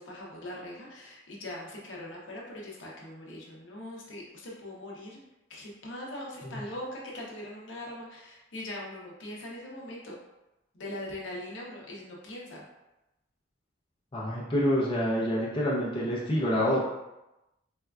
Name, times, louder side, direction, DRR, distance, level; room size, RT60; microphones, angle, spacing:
voice 1, 0.0-5.2 5.5-10.1 10.7-12.6, left 1 dB, 65° left, -3 dB, 0.7 m, -41 dB
voice 2, 14.1-16.8, equal, 25° left, -6 dB, 0.6 m, -27 dB
4.2 x 2.3 x 2.3 m, 0.95 s
head